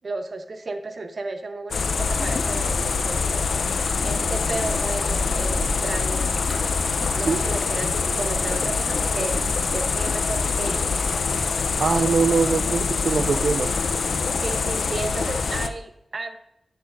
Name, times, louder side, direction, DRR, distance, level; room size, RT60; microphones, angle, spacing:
voice 1, 0.0-3.7 4.0-6.6 7.1-11.0 14.3-16.4, right 3 dB, 55° right, 7 dB, 0.9 m, -33 dB
sound 1, 1.7-15.7, left 4 dB, 85° left, 0.6 m, -24 dB
sound 2, 3.7-12.6, equal, 10° left, 1.7 m, -38 dB
voice 2, 11.8-14.0, right 5 dB, 75° right, 8 dB, 0.4 m, -23 dB
10.5 x 8.4 x 2.6 m, 0.79 s
wide cardioid pair, 115°, 0 cm